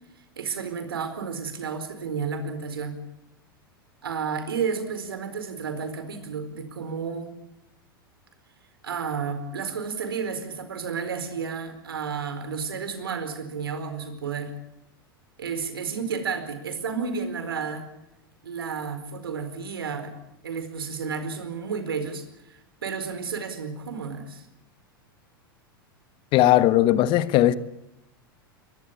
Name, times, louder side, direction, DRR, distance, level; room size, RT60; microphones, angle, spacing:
voice 1, 0.4-3.0 4.0-7.4 8.8-14.5 15.4-17.9 18.4-24.4, right 5 dB, 80° right, 4.5 m, -32 dB
voice 2, 26.3-27.5, left 14 dB, 45° left, 1.3 m, -18 dB
23.0 x 21.0 x 8.5 m
hypercardioid pair, 95°, 12 cm